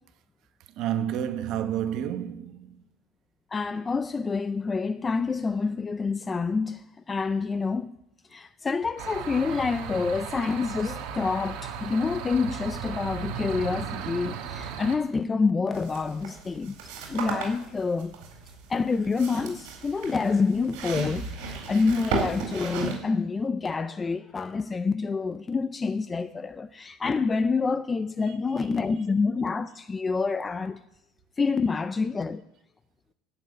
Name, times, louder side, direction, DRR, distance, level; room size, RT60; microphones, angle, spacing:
voice 1, 0.8-2.8, right 10 dB, 45° right, 1.0 m, -30 dB
voice 2, 3.5-7.9 8.3-16.7 17.1-18.2 18.7-30.8 31.4-32.4, left 4 dB, 15° left, 0.4 m, -27 dB
sound 1, 9.0-15.0, right 7 dB, 65° right, 1.8 m, -36 dB
sound 2, 15.7-23.0, right 4 dB, 80° right, 4.3 m, -35 dB
11.5 x 7.5 x 9.4 m
cardioid pair, 175°, 0 cm